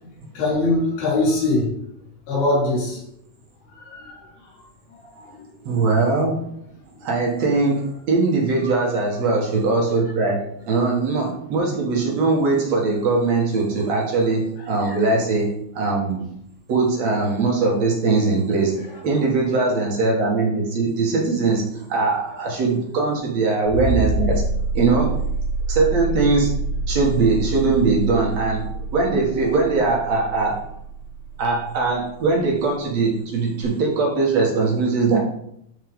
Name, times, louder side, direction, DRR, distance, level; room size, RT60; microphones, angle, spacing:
voice 1, 0.4-1.7 2.3-3.0 3.8-4.2 5.2-5.3 14.8-15.0, left 2 dB, 85° left, -6 dB, 5.6 m, -22 dB
voice 2, 5.7-6.4 7.0-16.3 16.7-24.4 24.7-25.2 25.7-26.6 26.9-30.6 31.4-35.2, right 3 dB, 55° right, -2 dB, 2.1 m, -21 dB
sound 1, 23.7-32.1 33.6-33.7, right 2 dB, 40° left, 1.3 m, -26 dB
13.0 x 4.5 x 3.6 m, 0.74 s
omnidirectional pair, 4.5 m